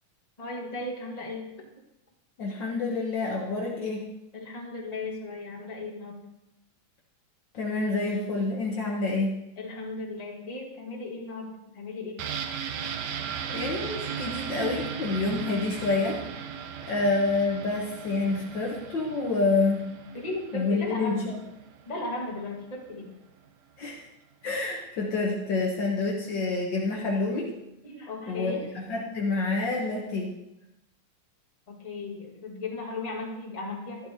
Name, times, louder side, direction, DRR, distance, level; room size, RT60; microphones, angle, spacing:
voice 1, 0.4-1.5 4.3-6.2 9.6-12.2 20.1-21.3 21.9-23.1 27.8-28.6 31.7-34.1, left 3 dB, 30° left, -2 dB, 0.7 m, -36 dB
voice 2, 2.4-4.1 7.5-9.4 13.5-16.2 16.9-19.9 20.5-21.4 23.8-24.1 24.4-27.5 28.3-30.3, left 3 dB, 75° left, -2 dB, 1.0 m, -28 dB
sound 1, 12.2-21.8 22.1-22.2, right 7 dB, 75° right, 2.1 m, -37 dB
13.5 x 11.5 x 2.9 m, 0.89 s
omnidirectional pair, 3.9 m